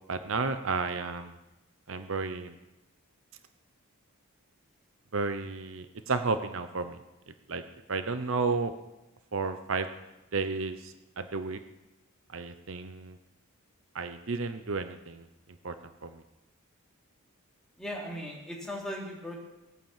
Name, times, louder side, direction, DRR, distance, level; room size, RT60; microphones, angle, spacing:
voice 1, 0.1-1.3 1.9-2.5 5.1-7.0 7.3-7.6 7.9-8.7 9.3-9.9 10.3-11.6 12.3-13.2 13.9-15.2 15.6-15.8 16.0-16.2, right 4 dB, 65° right, 9 dB, 0.8 m, -32 dB
voice 2, 17.8-19.5, equal, ahead, -3 dB, 3.1 m, -38 dB
19.0 x 9.0 x 7.3 m, 1.0 s
head